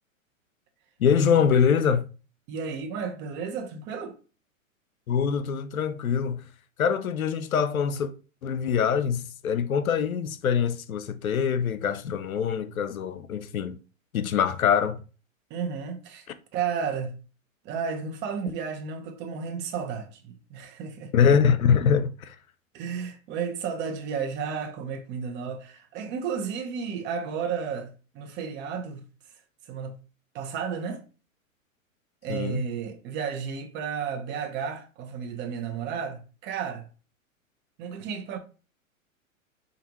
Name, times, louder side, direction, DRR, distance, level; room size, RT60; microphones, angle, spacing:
voice 1, 1.0-2.0 5.1-6.4 6.8-8.1 8.4-13.8 14.1-15.0 21.1-22.4 32.3-32.6, left 7 dB, 85° left, 0.6 m, -24 dB
voice 2, 2.5-4.2 15.5-16.3 16.5-17.2 17.6-21.1 22.7-29.0 29.7-30.0 30.3-31.0 32.2-36.9 37.8-38.4, right 6 dB, 25° right, 0.7 m, -33 dB
4.9 x 2.4 x 3.0 m
hypercardioid pair, 110°, 41 cm